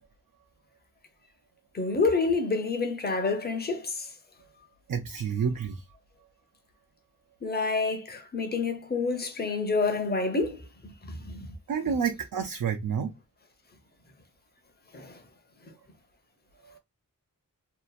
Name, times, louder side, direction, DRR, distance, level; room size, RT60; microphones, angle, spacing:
voice 1, 1.7-4.1 7.4-11.6 14.9-15.2, left 3 dB, 30° left, 0.7 m, -28 dB
voice 2, 4.9-5.8 11.7-13.1, right 7 dB, 75° right, 0.5 m, -29 dB
2.8 x 2.5 x 2.3 m
wide cardioid pair, 70°, 34 cm